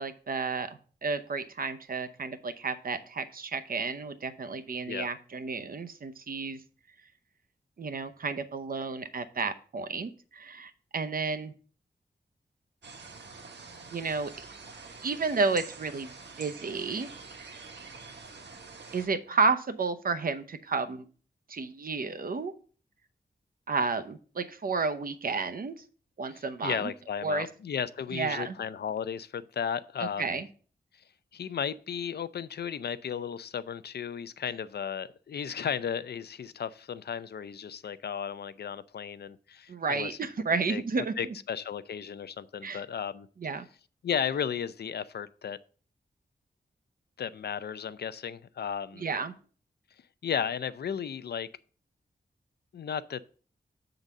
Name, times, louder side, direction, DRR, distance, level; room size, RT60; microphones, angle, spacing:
voice 1, 0.0-6.6 7.8-11.5 13.9-14.3 15.0-16.1 16.4-17.1 17.4-17.6 18.9-21.0 21.5-22.5 23.7-25.7 26.2-26.9 27.2-27.5 28.1-28.6 30.2-30.5 39.7-41.1 42.6-42.8 43.4-43.6 49.0-49.3, right 4 dB, 55° right, 0.7 m, -31 dB
sound 1, 12.8-19.1, right 4 dB, 90° right, 1.2 m, -46 dB
voice 2, 26.3-30.4 31.3-40.2 40.7-43.3 44.0-45.6 47.2-49.0 50.2-51.5 52.7-53.2, left 8 dB, 70° left, 0.4 m, -34 dB
7.2 x 3.9 x 6.5 m
wide cardioid pair, 140°, 18 cm